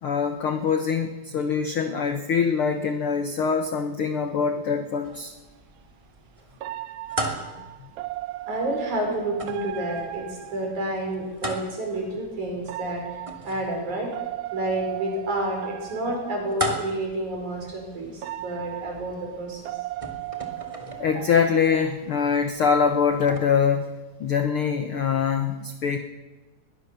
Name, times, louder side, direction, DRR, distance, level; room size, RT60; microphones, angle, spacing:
voice 1, 0.0-5.3 21.0-23.9 24.2-26.0, left 6 dB, 80° left, 7 dB, 1.2 m, -24 dB
sound 1, 5.0-23.4, right 1 dB, 15° right, 1.5 m, -39 dB
sound 2, 5.1-5.2 6.6-11.3 12.6-16.8 17.6-17.7 18.2-22.6 22.9-23.3, right 15 dB, 80° right, 2.8 m, -37 dB
voice 2, 8.5-14.1 14.5-19.8, right 1 dB, 55° right, 1 dB, 6.6 m, -30 dB
21.5 x 19.5 x 6.9 m, 1.2 s
omnidirectional pair, 4.2 m